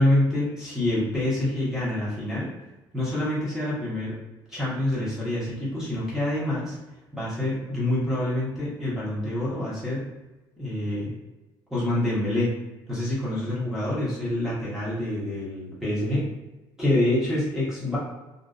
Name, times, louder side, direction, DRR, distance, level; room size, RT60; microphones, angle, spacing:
voice 1, 0.0-2.5 2.9-4.2 4.5-6.8 7.1-10.1 10.6-11.1 11.7-12.5 12.9-16.3 16.8-18.0, left 1 dB, 5° right, -9 dB, 0.8 m, -26 dB
2.5 x 2.1 x 2.3 m, 1.1 s
cardioid pair, 145°, 9 cm